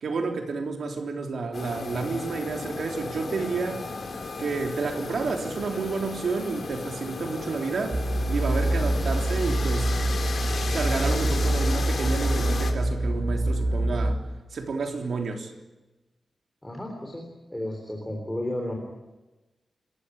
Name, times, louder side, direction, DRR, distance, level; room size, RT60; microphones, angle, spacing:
voice 1, 0.0-3.9 4.4-8.0 8.3-9.9 10.7-14.2 14.5-15.5, right 4 dB, 75° right, 2 dB, 3.6 m, -30 dB
sound 1, 1.5-12.7, left 4 dB, 55° left, 3.4 m, -34 dB
sound 2, 7.9-14.2, right 1 dB, 30° right, 5.0 m, -25 dB
voice 2, 16.6-18.8, left 1 dB, 10° left, 2 dB, 3.7 m, -33 dB
29.0 x 14.5 x 9.8 m, 1.1 s
wide cardioid pair, 160°, 0 cm